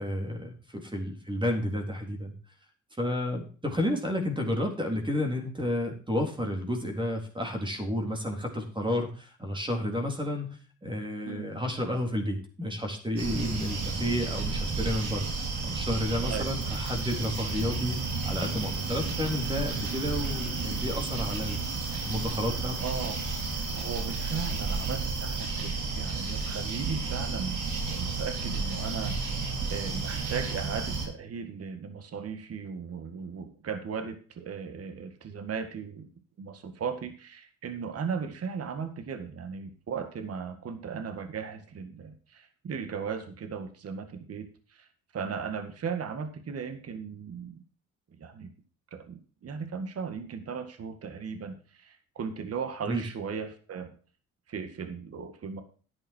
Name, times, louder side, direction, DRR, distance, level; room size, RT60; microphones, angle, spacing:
voice 1, 0.0-2.3 3.0-15.3 15.6-18.0 18.3-21.6 22.0-22.7 52.9-53.0, left 1 dB, 15° right, 3 dB, 3.8 m, -31 dB
sound 1, 13.2-31.1, right 4 dB, 80° right, 4.3 m, -32 dB
voice 2, 22.8-23.2 23.8-29.2 29.6-36.1 36.4-47.6 48.2-48.5 48.9-53.9 54.5-55.6, right 6 dB, 50° right, 8 dB, 1.9 m, -37 dB
11.0 x 8.8 x 4.6 m, 0.40 s
cardioid pair, 90°, 30 cm